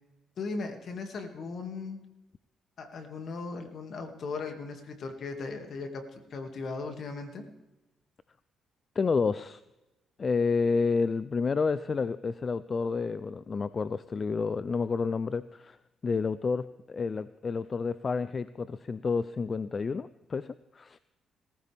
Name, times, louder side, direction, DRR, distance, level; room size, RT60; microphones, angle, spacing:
voice 1, 0.4-2.0 2.8-7.4, left 4 dB, 60° left, 5 dB, 2.2 m, -37 dB
voice 2, 9.0-9.6 10.2-15.8 16.0-21.0, left 4 dB, 40° left, 15 dB, 0.4 m, -30 dB
18.5 x 15.0 x 3.5 m, 0.99 s
cardioid pair, 90°, 0 cm